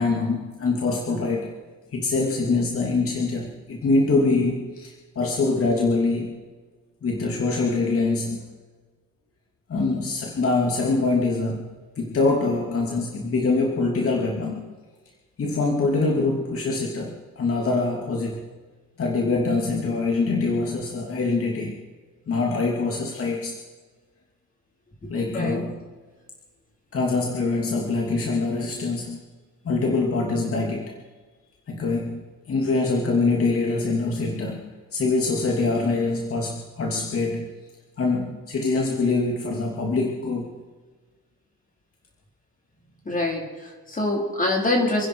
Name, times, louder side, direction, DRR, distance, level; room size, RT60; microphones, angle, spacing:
voice 1, 0.0-1.6 1.9-6.4 7.0-8.5 9.7-14.7 15.4-18.5 19.0-21.8 22.3-23.6 25.1-25.8 26.9-29.2 29.6-31.0 31.7-37.5 38.0-40.6, left 3 dB, 50° left, -1 dB, 2.8 m, -24 dB
voice 2, 25.0-25.6 43.0-45.1, left 2 dB, 25° left, 0 dB, 4.6 m, -25 dB
29.0 x 10.0 x 4.8 m, 1.4 s
cardioid pair, 90°, 30 cm